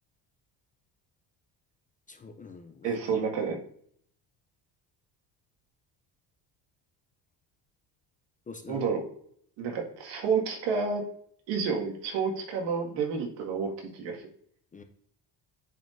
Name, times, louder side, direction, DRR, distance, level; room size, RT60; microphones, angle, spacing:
voice 1, 2.1-3.0 8.5-8.8 14.7-14.8, left 4 dB, 20° left, 6 dB, 0.4 m, -44 dB
voice 2, 2.8-3.6 8.7-9.0 9.6-11.0 11.5-14.2, right 5 dB, 75° right, 1 dB, 2.0 m, -30 dB
9.2 x 4.3 x 2.6 m, 0.63 s
cardioid pair, 140°, 43 cm